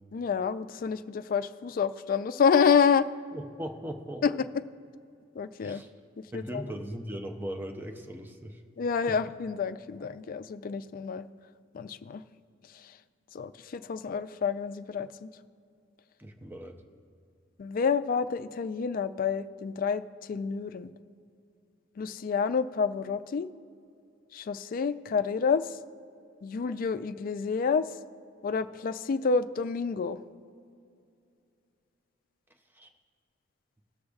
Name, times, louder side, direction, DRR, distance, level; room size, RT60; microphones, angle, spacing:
voice 1, 0.1-3.1 4.2-4.6 5.4-5.8 6.2-6.6 8.8-11.3 11.7-12.2 13.3-15.3 17.6-20.9 22.0-23.5 24.3-25.7 26.4-27.9 28.4-30.2, left 6 dB, 50° left, 12 dB, 0.3 m, -28 dB
voice 2, 3.3-4.2 5.6-5.9 6.3-8.6 9.1-9.2 16.2-16.8 32.7-32.9, equal, 10° right, 4 dB, 0.6 m, -39 dB
18.5 x 6.5 x 2.4 m, 2.4 s
head